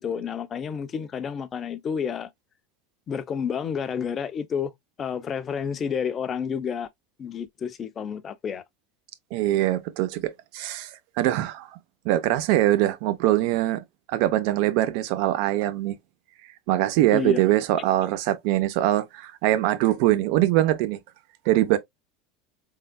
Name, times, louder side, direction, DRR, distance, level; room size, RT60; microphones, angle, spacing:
voice 1, 0.0-2.3 3.1-4.7 5.0-6.9 7.2-8.6 17.1-17.4, left 7 dB, 35° left, 0.7 m, -30 dB
voice 2, 9.3-11.7 12.0-13.8 14.1-16.0 16.7-21.0 21.5-21.8, right 14 dB, 65° right, 0.8 m, -23 dB
4.1 x 3.8 x 2.2 m
hypercardioid pair, 100°, 0 cm